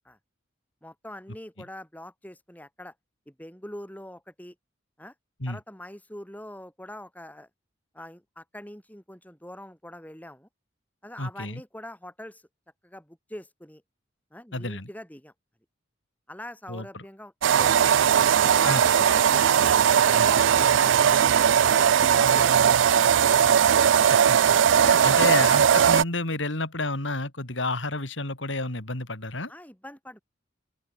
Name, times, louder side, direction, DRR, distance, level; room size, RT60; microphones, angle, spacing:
voice 1, 0.8-2.9 3.3-4.6 5.0-5.1 5.5-7.5 7.9-10.5 11.0-12.4 12.8-13.8 14.3-15.3 16.3-17.9 18.3-20.8 21.6-23.4 24.0-24.2 24.5-25.4 29.5-30.2, left 1 dB, 10° left, 7.4 m, -42 dB
voice 2, 11.2-11.6 14.5-14.9 16.7-17.0 18.7-18.8 24.1-24.5 24.8-29.5, left 2 dB, 75° left, 4.1 m, -30 dB
sound 1, 17.4-26.0, right 8 dB, 75° right, 0.4 m, -19 dB
open air
head